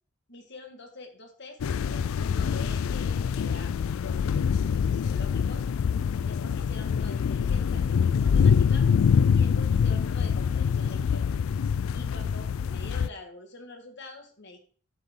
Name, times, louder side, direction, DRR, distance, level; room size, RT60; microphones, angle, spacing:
voice 1, 0.3-4.2 4.7-5.7 6.2-8.9 9.3-11.3 11.9-14.6, left 2 dB, 55° left, 4 dB, 1.9 m, -46 dB
sound 1, 1.6-13.1, left 6 dB, 90° left, 0.4 m, -25 dB
11.5 x 6.7 x 3.8 m, 0.42 s
head